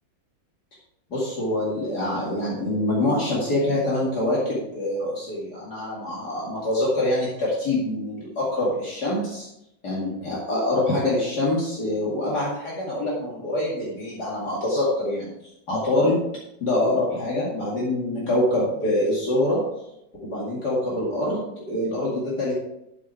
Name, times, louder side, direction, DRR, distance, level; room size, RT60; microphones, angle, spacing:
voice 1, 1.1-9.5 9.8-15.3 15.7-16.3 16.6-19.7 20.2-22.5, left 1 dB, 55° left, -6 dB, 2.9 m, -25 dB
11.5 x 6.8 x 4.5 m, 0.84 s
omnidirectional pair, 2.1 m